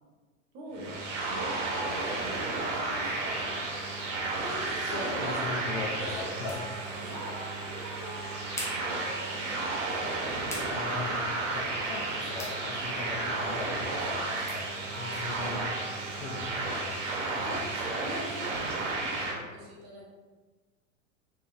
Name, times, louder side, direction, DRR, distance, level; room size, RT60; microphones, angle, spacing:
voice 1, 0.5-3.5 4.4-5.7 6.0-6.6 6.9-8.2 8.8-10.8 17.4-17.6 18.0-18.6 18.9-20.1, right 1 dB, 40° right, -2 dB, 1.1 m, -43 dB
sound 1, 0.7-19.4, right 3 dB, 65° right, 0.9 m, -33 dB
Telephone, 1.9-18.9, right 1 dB, 25° right, 1.2 m, -48 dB
voice 2, 4.7-6.6 10.7-11.2 11.5-14.6 14.9-15.7 16.0-17.0 17.3-17.6 17.9-18.0, left 3 dB, 70° left, -4 dB, 0.7 m, -39 dB
sound 2, 8.0-16.2, left 1 dB, 10° left, 0.4 m, -49 dB
3.6 x 2.8 x 2.5 m, 1.3 s
hypercardioid pair, 90°, 40 cm